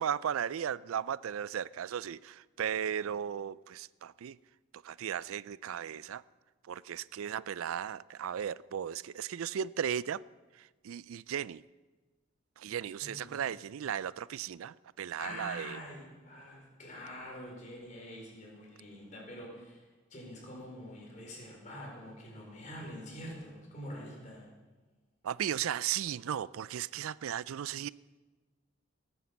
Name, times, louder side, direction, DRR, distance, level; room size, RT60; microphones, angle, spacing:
voice 1, 0.0-4.4 4.8-6.2 6.7-10.2 10.8-11.6 12.6-15.8 25.2-27.9, right 9 dB, 85° right, 0.4 m, -36 dB
voice 2, 12.7-13.4 15.2-19.8 20.1-24.5, left 1 dB, 35° left, 4.6 m, -45 dB
18.5 x 9.5 x 7.0 m
head